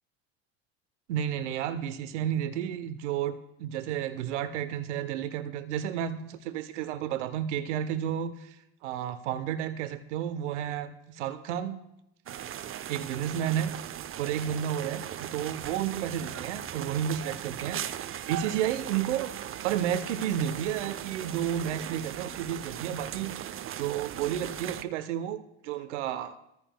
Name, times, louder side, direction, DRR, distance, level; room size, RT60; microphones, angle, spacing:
voice 1, 1.1-11.8 12.9-13.7 14.2-19.3 19.6-26.4, right 10 dB, 90° right, 0.8 m, -32 dB
sound 1, 12.3-24.8, right 10 dB, 40° right, 0.6 m, -38 dB
23.5 x 14.5 x 2.2 m
supercardioid pair, 80°, 34 cm